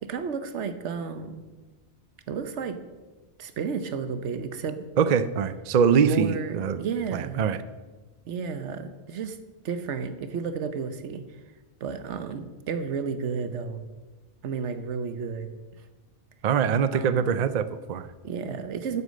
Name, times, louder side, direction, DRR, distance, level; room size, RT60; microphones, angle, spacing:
voice 1, 0.0-1.4 2.3-2.8 3.4-4.8 5.9-7.5 8.3-9.4 9.6-11.2 11.8-13.8 14.4-15.5 16.9-17.4 18.2-19.0, right 6 dB, 80° right, 10 dB, 1.2 m, -32 dB
voice 2, 5.0-6.8 7.1-7.6 16.4-18.1, right 7 dB, 50° right, 13 dB, 0.5 m, -23 dB
9.6 x 8.2 x 6.5 m, 1.2 s
omnidirectional pair, 1.2 m